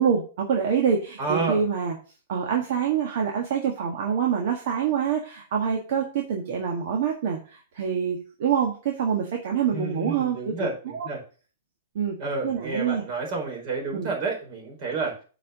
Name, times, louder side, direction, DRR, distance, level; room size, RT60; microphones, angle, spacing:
voice 1, 0.0-2.0 2.3-10.5 10.9-11.1 12.0-12.2 12.4-13.0 13.9-14.1, right 7 dB, 60° right, 0 dB, 1.7 m, -26 dB
voice 2, 1.2-1.6 9.7-11.2 12.2-15.1, right 3 dB, 40° right, 0 dB, 4.4 m, -30 dB
7.6 x 4.9 x 7.2 m, 0.38 s
hypercardioid pair, 150°, 0 cm